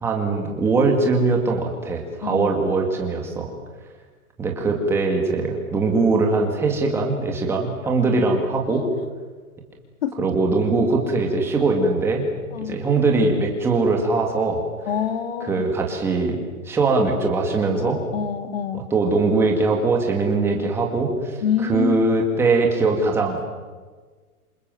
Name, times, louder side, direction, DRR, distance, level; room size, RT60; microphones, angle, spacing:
voice 1, 0.0-3.5 4.4-8.9 10.2-12.3 12.6-14.6 15.4-16.4 16.7-18.0 18.7-23.4, right 3 dB, 5° right, 1 dB, 2.1 m, -21 dB
voice 2, 14.9-15.7 17.8-18.8 21.4-22.0, left 8 dB, 40° left, 8 dB, 2.7 m, -26 dB
27.5 x 24.5 x 7.8 m, 1.4 s
hypercardioid pair, 175°, 45 cm